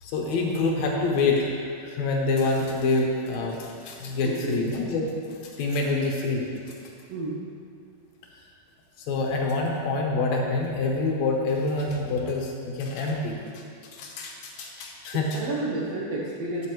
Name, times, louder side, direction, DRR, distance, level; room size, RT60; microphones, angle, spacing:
voice 1, 0.0-1.5 1.8-5.2 5.6-6.5 9.1-13.6 13.9-15.4, left 3 dB, 70° left, 0 dB, 2.0 m, -26 dB
voice 2, 4.2-4.7 7.1-7.5 15.3-16.7, right 2 dB, 70° right, -5 dB, 1.6 m, -30 dB
12.0 x 7.5 x 3.1 m, 2.3 s
omnidirectional pair, 3.8 m